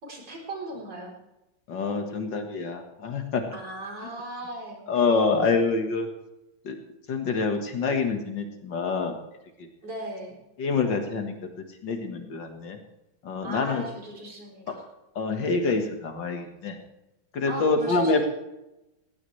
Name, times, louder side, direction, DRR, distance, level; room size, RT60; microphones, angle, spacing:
voice 1, 0.0-1.1 3.5-4.8 9.8-10.4 13.4-14.8 17.5-18.3, right 1 dB, 60° right, -2 dB, 4.6 m, -37 dB
voice 2, 1.7-3.4 4.9-6.1 6.6-6.8 7.1-9.2 10.6-11.3 11.8-12.8 13.2-13.9 15.2-16.8 17.3-18.3, left 4 dB, 65° left, 4 dB, 2.3 m, -26 dB
19.5 x 18.0 x 3.3 m, 0.94 s
omnidirectional pair, 2.1 m